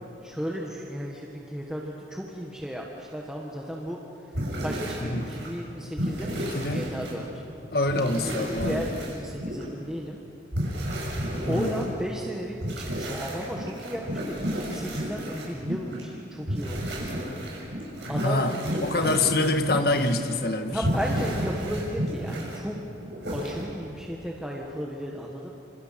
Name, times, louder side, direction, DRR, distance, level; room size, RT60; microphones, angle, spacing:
voice 1, 0.2-4.0 4.6-7.4 8.1-10.2 11.5-17.1 18.1-18.4 20.7-22.8 23.3-25.5, equal, 5° right, -2 dB, 1.5 m, -34 dB
sound 1, 4.3-5.6 6.0-7.1 7.8-9.6 10.5-11.9 12.6-16.0 16.4-20.3 20.6-22.6 23.0-23.6, equal, 75° right, 6.8 m, -31 dB
voice 2, 6.5-6.9 7.7-8.9 11.5-11.9 18.0-20.8, left 2 dB, 55° left, 7 dB, 1.6 m, -26 dB
27.5 x 26.5 x 5.9 m, 2.8 s
head